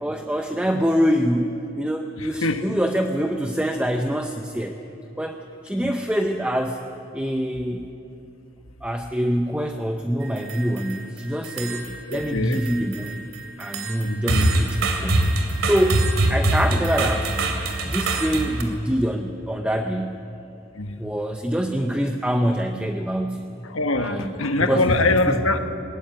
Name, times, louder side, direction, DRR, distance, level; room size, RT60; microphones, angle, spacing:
voice 1, 0.0-4.7 5.2-5.4 5.6-6.8 7.1-7.8 8.8-13.2 13.6-15.3 15.6-17.3 17.8-20.2 21.0-23.6 24.0-24.3 24.6-25.0 25.3-25.4, equal, 5° right, 4 dB, 0.7 m, -25 dB
voice 2, 2.2-2.8 5.8-5.9 11.9-12.7 14.0-14.6 20.7-21.1 23.6-25.6, left 2 dB, 75° left, 7 dB, 1.4 m, -24 dB
sound 1, 10.2-11.0 11.4-12.3 12.5-18.6, right 2 dB, 70° right, 2.9 m, -24 dB
21.0 x 18.0 x 9.2 m, 2.7 s
head